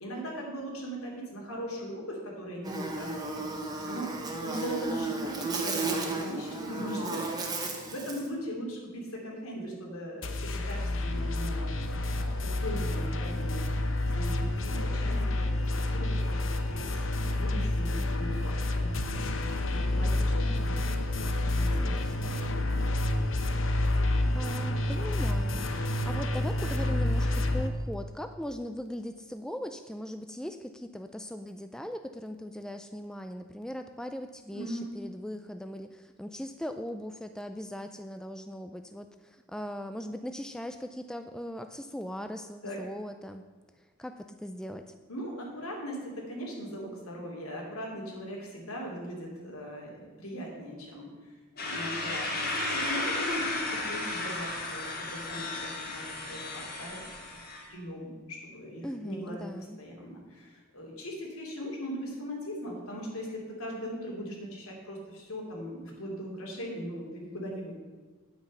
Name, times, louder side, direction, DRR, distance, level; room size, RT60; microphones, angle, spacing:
voice 1, 0.0-4.1 4.4-11.6 12.2-15.5 15.7-16.4 16.7-19.3 19.6-22.4 22.7-22.9 34.5-34.9 42.6-42.8 45.1-57.4 57.7-67.7, equal, 90° left, -1 dB, 3.0 m, -39 dB
Buzz, 2.6-8.3, right 3 dB, 20° right, 1.1 m, -34 dB
sound 1, 10.2-27.7, left 1 dB, 65° left, 0.9 m, -29 dB
voice 2, 21.7-22.3 23.8-43.5 44.0-44.9 58.8-59.8, equal, 5° left, 7 dB, 0.3 m, -39 dB
sound 2, 51.6-57.7, left 2 dB, 45° left, 2.4 m, -34 dB
9.5 x 8.8 x 5.5 m, 1.4 s
head